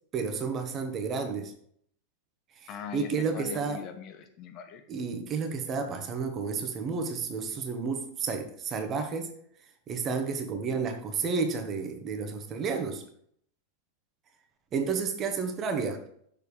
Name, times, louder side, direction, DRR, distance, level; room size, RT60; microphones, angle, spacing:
voice 1, 0.1-1.5 2.6-3.8 4.9-9.3 9.9-13.0 14.7-16.0, right 5 dB, 30° right, 6 dB, 1.3 m, -31 dB
voice 2, 2.7-4.8, left 7 dB, 35° left, 7 dB, 0.8 m, -40 dB
7.2 x 6.4 x 3.4 m, 0.65 s
figure-of-eight pair, 90°, 0 cm